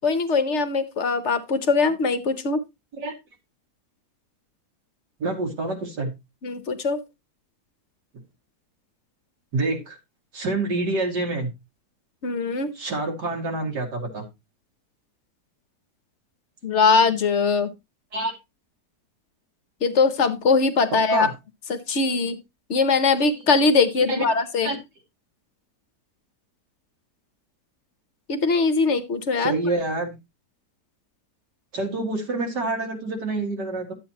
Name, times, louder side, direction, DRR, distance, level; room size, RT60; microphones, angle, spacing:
voice 1, 0.0-2.6 6.4-7.0 12.2-12.7 16.6-17.7 19.8-21.3 21.7-22.4 22.7-24.7 28.3-29.5, left 4 dB, 50° left, 11 dB, 1.0 m, -21 dB
voice 2, 5.2-6.1 9.5-10.0 10.3-11.5 12.8-14.2 18.1-18.3 21.1-21.3 24.0-24.2 24.6-24.8 29.4-30.1 31.7-33.9, right 2 dB, 80° right, 2 dB, 2.7 m, -27 dB
11.5 x 7.9 x 2.9 m, 0.23 s
omnidirectional pair, 1.8 m